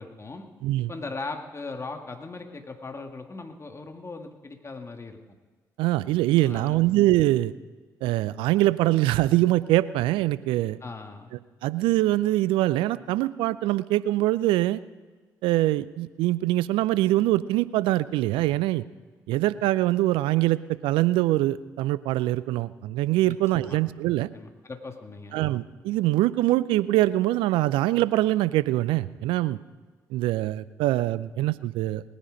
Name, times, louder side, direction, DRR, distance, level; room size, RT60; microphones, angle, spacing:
voice 1, 0.0-0.5 0.9-5.2 6.4-6.8 10.8-11.3 23.3-23.8 24.3-25.4, left 3 dB, 30° left, 5 dB, 1.9 m, -39 dB
voice 2, 5.8-7.5 8.0-10.8 11.6-14.8 15.4-18.8 19.3-24.3 25.3-29.6 30.1-32.0, right 16 dB, 75° right, 17 dB, 0.5 m, -23 dB
19.5 x 10.0 x 5.1 m, 1.4 s
hypercardioid pair, 45°, 9 cm